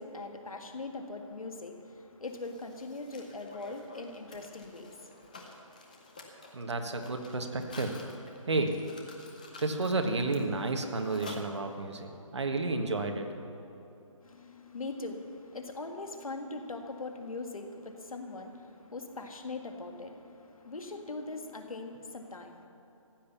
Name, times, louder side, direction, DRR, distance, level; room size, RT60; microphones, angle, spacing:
voice 1, 0.0-5.5 14.2-22.7, left 3 dB, 80° left, 5 dB, 1.9 m, -41 dB
Mechanisms, 2.2-12.0, left 2 dB, 15° left, 0.6 m, -50 dB
voice 2, 6.5-8.0 8.5-8.8 9.6-13.3, right 3 dB, 55° right, 5 dB, 1.5 m, -31 dB
15.0 x 10.5 x 7.1 m, 2.9 s
hypercardioid pair, 175°, 18 cm